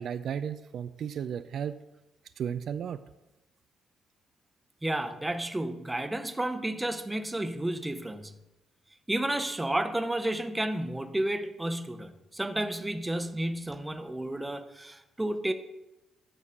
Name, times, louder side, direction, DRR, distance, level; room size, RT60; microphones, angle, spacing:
voice 1, 0.0-1.8 2.4-3.0, right 8 dB, 65° right, 11 dB, 0.3 m, -34 dB
voice 2, 4.8-8.3 9.1-15.5, right 1 dB, 10° right, 9 dB, 0.7 m, -31 dB
9.7 x 3.6 x 6.5 m, 0.95 s
cardioid pair, 90°, 0 cm